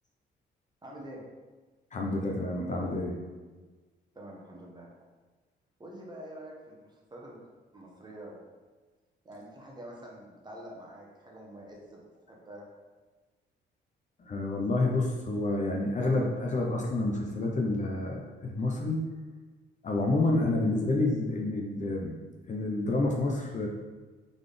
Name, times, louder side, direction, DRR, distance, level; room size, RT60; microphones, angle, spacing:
voice 1, 0.8-1.2 4.1-4.9 5.8-7.4 7.7-8.4 9.2-12.6, right 1 dB, 20° right, -3 dB, 1.1 m, -46 dB
voice 2, 1.9-3.1 14.2-19.1 19.8-22.1 22.5-23.7, left 2 dB, 40° left, 0 dB, 0.7 m, -29 dB
3.9 x 3.6 x 3.4 m, 1.3 s
cardioid pair, 90°, 20 cm